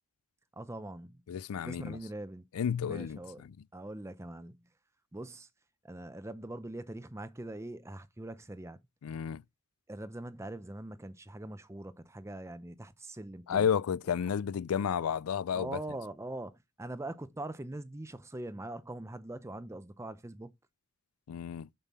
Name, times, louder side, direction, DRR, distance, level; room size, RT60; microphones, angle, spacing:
voice 1, 0.5-1.2 1.6-2.4 2.8-3.4 3.7-4.6 5.1-5.5 5.8-8.8 9.9-13.7 15.5-20.5, right 1 dB, 15° right, 0.6 m, -42 dB
voice 2, 1.3-2.0 2.5-3.6 9.0-9.4 13.5-15.8 21.3-21.7, left 7 dB, 85° left, 0.4 m, -32 dB
7.1 x 5.5 x 4.2 m
head